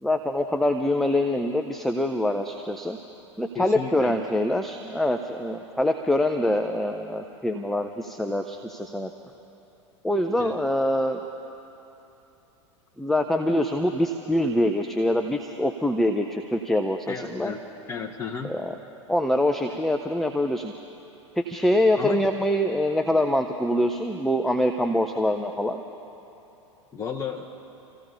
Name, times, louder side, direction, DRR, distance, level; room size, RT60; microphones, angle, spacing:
voice 1, 0.0-3.0 3.4-9.1 10.0-11.2 13.0-17.5 18.4-18.7 19.1-20.7 21.4-25.8, left 1 dB, ahead, 6 dB, 0.6 m, -24 dB
voice 2, 3.5-4.2 10.4-10.6 17.1-17.6 17.9-18.6 21.9-22.3 26.9-27.5, left 5 dB, 20° left, 3 dB, 0.9 m, -33 dB
29.5 x 15.5 x 2.8 m, 3.0 s
figure-of-eight pair, 90°, 16 cm